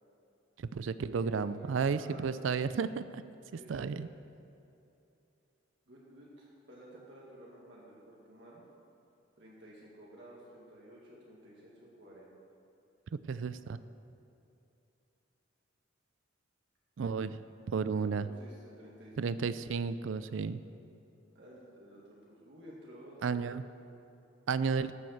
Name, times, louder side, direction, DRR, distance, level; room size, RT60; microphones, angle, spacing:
voice 1, 0.6-3.2 3.7-4.1 13.3-13.8 17.0-17.4 17.7-18.3 19.2-20.6 23.2-23.6 24.5-24.9, right 5 dB, 80° right, 14 dB, 0.4 m, -32 dB
voice 2, 1.2-2.6 3.5-4.0 5.9-8.6 9.4-12.3 18.0-19.4 21.3-23.4, right 1 dB, 60° right, -5 dB, 2.0 m, -53 dB
12.5 x 7.7 x 6.5 m, 2.8 s
head